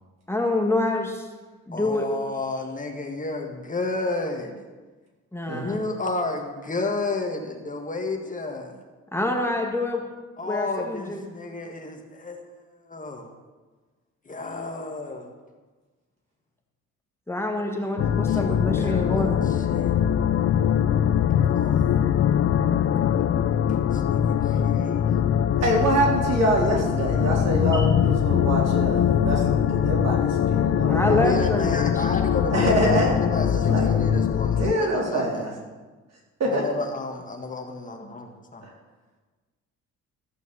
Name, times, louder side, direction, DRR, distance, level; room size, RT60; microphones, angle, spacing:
voice 1, 0.3-1.3 1.7-2.1 5.3-5.8 9.1-10.0 10.5-11.2 17.3-19.5 27.7-27.9 30.9-31.8, left 1 dB, 10° left, 1 dB, 1.7 m, -26 dB
voice 2, 1.7-4.6 5.5-8.8 10.4-13.3 14.2-15.3 18.3-19.9 21.4-22.0 23.7-25.3 31.2-35.4 36.4-38.7, left 3 dB, 25° left, 2 dB, 1.6 m, -32 dB
sound 1, 18.0-34.7, left 9 dB, 50° left, 0.5 m, -22 dB
voice 3, 25.6-31.3 32.5-33.2 33.5-33.9 34.6-35.5 36.4-36.6 38.6-38.7, right 1 dB, 60° right, -2 dB, 3.9 m, -25 dB
14.5 x 6.2 x 7.0 m, 1.3 s
cardioid pair, 90°, 30 cm